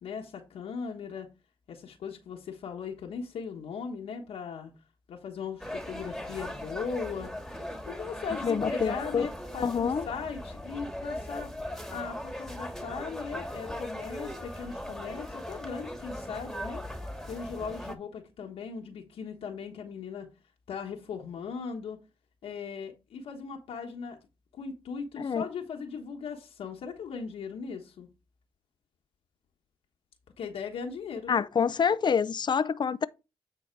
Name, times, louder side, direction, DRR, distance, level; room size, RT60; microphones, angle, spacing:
voice 1, 0.0-1.3 1.7-4.7 5.1-7.3 7.9-11.5 11.9-16.8 17.3-20.3 20.7-22.0 22.4-24.2 24.5-28.1 30.4-31.5, left 6 dB, 90° left, 1.2 m, -38 dB
sound 1, 5.6-17.9, equal, 5° left, 2.1 m, -39 dB
voice 2, 8.4-9.3 9.6-10.1 25.2-25.5 31.3-33.1, left 6 dB, 50° left, 0.5 m, -27 dB
9.2 x 4.1 x 4.5 m
cardioid pair, 55°, 10 cm